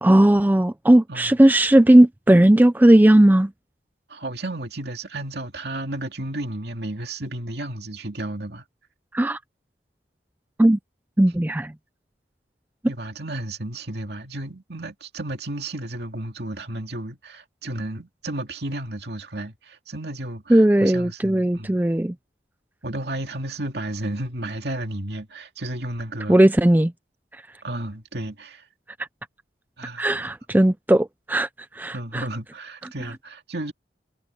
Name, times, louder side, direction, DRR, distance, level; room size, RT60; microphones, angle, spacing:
voice 1, 0.0-3.5 9.1-9.4 10.6-10.8 11.2-11.7 20.5-22.1 26.3-26.9 30.0-31.5 31.7-32.2, right 1 dB, 10° right, 0.4 m, -16 dB
voice 2, 4.1-8.6 12.9-21.8 22.8-26.4 27.6-28.6 29.8-30.1 31.9-33.7, right 1 dB, 70° right, 2.3 m, -33 dB
head